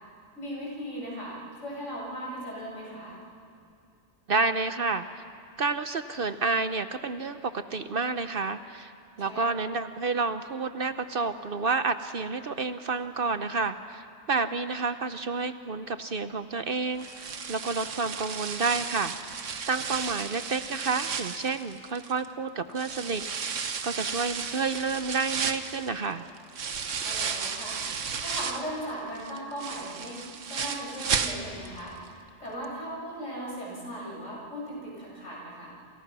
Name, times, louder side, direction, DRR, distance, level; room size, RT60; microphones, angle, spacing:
voice 1, 0.4-3.2 9.2-9.6 27.0-27.8 28.2-30.2 30.5-32.0 32.4-35.7, equal, 70° left, -3 dB, 7.6 m, -38 dB
voice 2, 4.3-5.2 5.6-8.9 9.2-26.2, right 4 dB, 50° right, 10 dB, 0.9 m, -30 dB
sound 1, 17.0-22.3 22.7-28.7 29.1-31.8 32.1-32.2 32.6-32.7, right 6 dB, 75° right, 1.5 m, -34 dB
28.5 x 28.5 x 6.1 m, 2.4 s
omnidirectional pair, 1.3 m